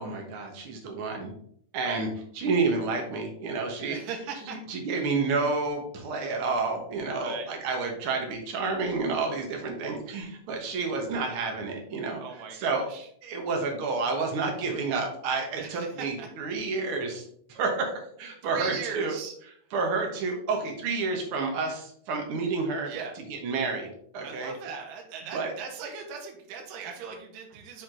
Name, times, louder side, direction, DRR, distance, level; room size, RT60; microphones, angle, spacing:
voice 1, 0.0-1.3 1.7-2.1 2.3-4.0 4.5-12.2 12.5-12.8 13.2-17.9 18.2-19.2 19.7-22.9 23.3-24.5 25.3-25.5, right 4 dB, 60° right, 2 dB, 1.4 m, -30 dB
voice 2, 3.9-4.6 7.2-7.5 12.2-13.1 15.6-16.3 18.4-19.3 22.9-23.2 24.2-27.8, right 6 dB, 75° right, 1 dB, 2.3 m, -39 dB
6.0 x 5.2 x 3.8 m, 0.64 s
omnidirectional pair, 4.1 m